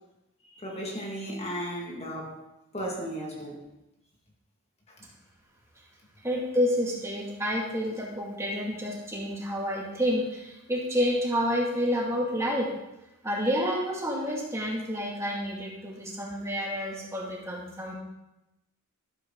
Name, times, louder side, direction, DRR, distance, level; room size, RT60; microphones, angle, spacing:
voice 1, 0.4-2.4 2.7-3.6 4.9-5.0, equal, 30° left, -1 dB, 2.0 m, -35 dB
voice 2, 6.2-12.7 13.2-17.9, equal, 10° right, -3 dB, 2.3 m, -29 dB
13.5 x 12.5 x 3.9 m, 0.93 s
head